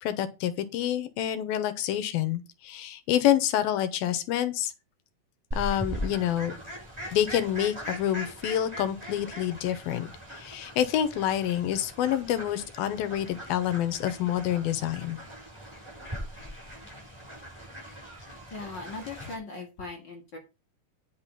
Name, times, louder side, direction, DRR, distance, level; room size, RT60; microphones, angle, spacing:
voice 1, 0.0-4.7 5.5-6.5 7.1-15.2, left 11 dB, 85° left, 2.8 m, -28 dB
Fowl, 5.5-19.4, equal, 5° right, 6.6 m, -40 dB
voice 2, 18.5-20.4, left 3 dB, 35° left, 2.4 m, -39 dB
10.0 x 6.1 x 5.6 m
omnidirectional pair, 4.2 m